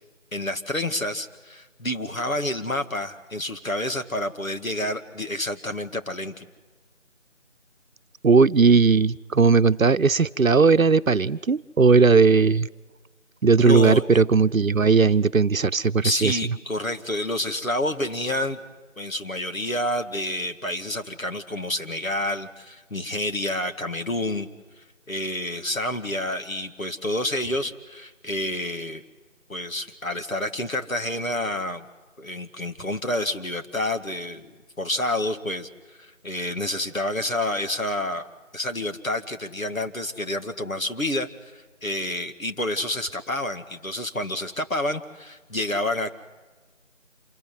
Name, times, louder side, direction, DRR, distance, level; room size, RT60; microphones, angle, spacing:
voice 1, 0.3-6.5 13.6-14.2 16.0-18.6 19.0-24.5 25.1-29.0 29.5-31.9 32.2-34.5 34.8-38.3 38.5-46.1, left 1 dB, 90° left, 7 dB, 2.2 m, -29 dB
voice 2, 8.2-12.7 13.4-16.4, right 4 dB, 85° right, 13 dB, 0.8 m, -18 dB
27.0 x 18.5 x 9.4 m, 1.3 s
figure-of-eight pair, 180°, 39 cm